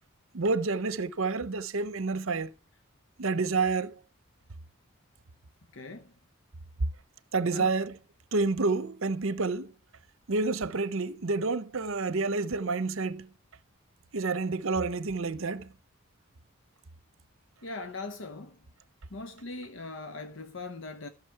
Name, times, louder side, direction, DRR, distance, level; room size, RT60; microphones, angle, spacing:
voice 1, 0.3-2.5 3.2-4.0 7.3-7.9 8.3-9.7 10.3-13.3 14.1-15.7, right 3 dB, 65° right, 0.7 m, -29 dB
voice 2, 5.7-6.2 7.5-7.7 17.6-18.6 19.1-21.1, left 3 dB, 55° left, 0.8 m, -40 dB
13.5 x 6.3 x 4.6 m
head